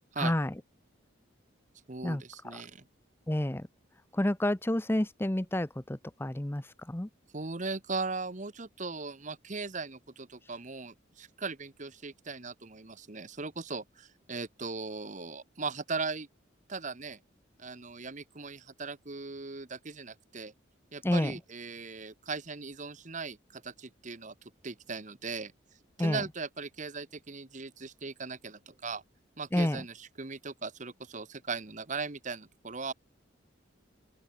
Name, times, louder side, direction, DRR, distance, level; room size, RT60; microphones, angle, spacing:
voice 1, 0.2-0.5 2.0-2.6 3.3-3.7 4.1-7.1 21.0-21.3 26.0-26.2 29.5-29.8, left 1 dB, 10° left, 0.7 m, -30 dB
voice 2, 1.9-2.8 7.3-16.3 16.7-17.2 17.6-20.5 20.9-24.3 24.6-25.5 26.0-29.0 29.4-32.9, right 4 dB, 40° right, 1.2 m, -38 dB
open air
head